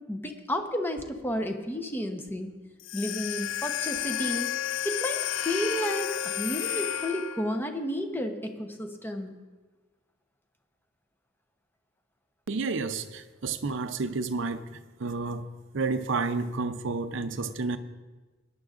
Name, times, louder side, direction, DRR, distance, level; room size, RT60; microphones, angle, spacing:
voice 1, 0.1-2.5 2.9-4.5 4.8-9.3, equal, 10° left, 0.8 m, -32 dB
sound 1, 2.8-7.6, left 11 dB, 65° left, 0.4 m, -31 dB
voice 2, 12.5-17.8, right 4 dB, 65° right, 0.6 m, -31 dB
20.5 x 10.5 x 2.5 m
head